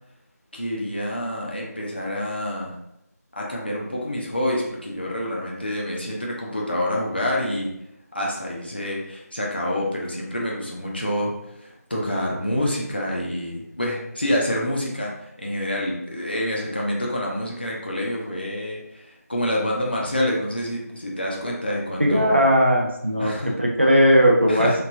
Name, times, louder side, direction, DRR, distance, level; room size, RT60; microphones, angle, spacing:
voice 1, 0.5-2.8 3.4-7.7 8.1-22.4 23.2-23.5 24.5-24.8, left 1 dB, 35° left, -3 dB, 0.5 m, -27 dB
voice 2, 22.0-24.8, equal, 40° right, 0 dB, 0.4 m, -18 dB
3.0 x 2.2 x 2.4 m, 0.81 s
figure-of-eight pair, 180°, 9 cm